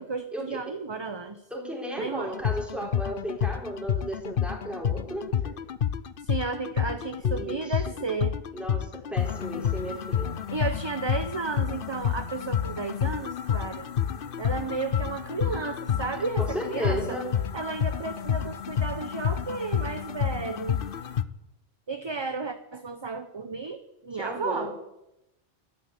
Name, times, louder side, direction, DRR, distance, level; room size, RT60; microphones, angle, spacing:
voice 1, 0.0-1.4 2.0-2.3 6.2-8.4 10.5-13.9 14.4-17.2 17.5-20.8 21.9-24.7, right 4 dB, 25° right, 9 dB, 0.8 m, -33 dB
voice 2, 1.5-5.5 7.2-8.0 8.5-10.4 16.4-17.3 24.2-24.7, equal, ahead, -1 dB, 4.0 m, -34 dB
sound 1, 2.3-21.2, left 9 dB, 55° left, 0.9 m, -29 dB
12.5 x 12.5 x 8.2 m, 0.90 s
omnidirectional pair, 1.1 m